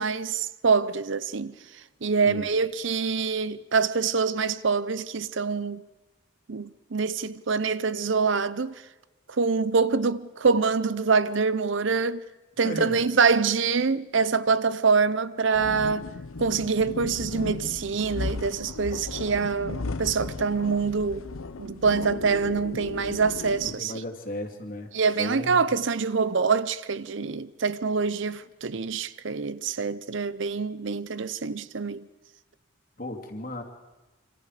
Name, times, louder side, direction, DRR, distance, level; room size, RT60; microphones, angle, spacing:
voice 1, 0.0-1.6 2.0-5.8 6.5-8.8 9.3-12.2 12.6-16.1 16.4-21.3 21.6-23.9 24.9-32.1, right 5 dB, 60° right, 0.7 m, -25 dB
voice 2, 12.6-13.0 23.6-24.9 25.2-25.7 33.0-33.6, left 1 dB, 45° left, 2.8 m, -35 dB
sound 1, 15.5-23.8, left 3 dB, 85° left, 0.8 m, -36 dB
26.5 x 26.0 x 5.1 m
head